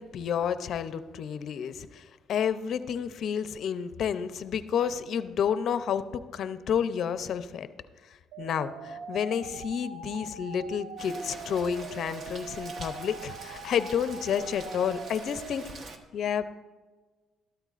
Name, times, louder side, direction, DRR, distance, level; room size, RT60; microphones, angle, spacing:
voice 1, 0.0-7.7 8.4-15.6 16.1-16.5, left 8 dB, 65° left, 12 dB, 0.5 m, -30 dB
sound 1, 8.3-15.7, right 4 dB, 80° right, 0.7 m, -42 dB
Rain, 11.0-16.0, right 3 dB, 50° right, 1.1 m, -45 dB
13.0 x 12.5 x 2.5 m, 1.3 s
cardioid pair, 95°, 0 cm